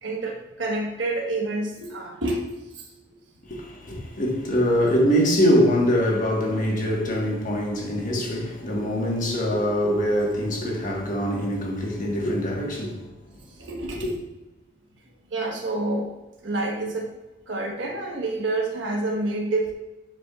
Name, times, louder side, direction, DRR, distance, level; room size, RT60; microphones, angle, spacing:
voice 1, 0.0-2.8 4.5-4.6 13.6-14.1 15.3-16.1 16.4-17.1 17.5-19.7, right 2 dB, 80° right, 1.3 m, -28 dB
voice 2, 3.5-13.0 14.0-14.2, equal, 45° left, 1.5 m, -23 dB
10.0 x 5.0 x 2.4 m
head